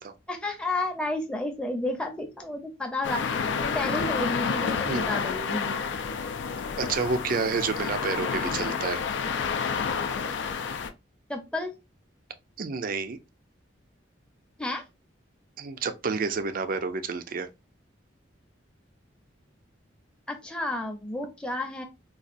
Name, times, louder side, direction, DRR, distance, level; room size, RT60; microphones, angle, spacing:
voice 1, 0.3-3.2 3.6-5.8 11.3-11.7 14.6-14.8 20.3-21.8, left 2 dB, 5° left, 0.6 m, -31 dB
sound 1, 3.0-10.9, left 6 dB, 65° left, 0.4 m, -29 dB
voice 2, 6.8-9.0 12.6-13.2 15.6-17.5, right 4 dB, 45° right, 0.4 m, -29 dB
3.9 x 2.3 x 2.5 m
head